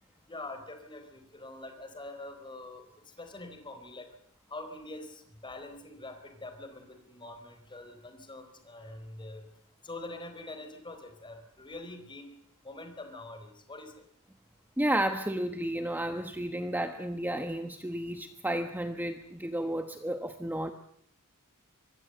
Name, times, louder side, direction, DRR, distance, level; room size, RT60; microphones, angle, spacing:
voice 1, 0.3-4.1 4.5-9.5 9.8-12.3 12.6-14.0, left 2 dB, 20° left, 7 dB, 4.2 m, -45 dB
voice 2, 14.8-20.7, right 1 dB, 10° right, 7 dB, 1.2 m, -32 dB
25.0 x 21.0 x 7.9 m, 0.68 s
head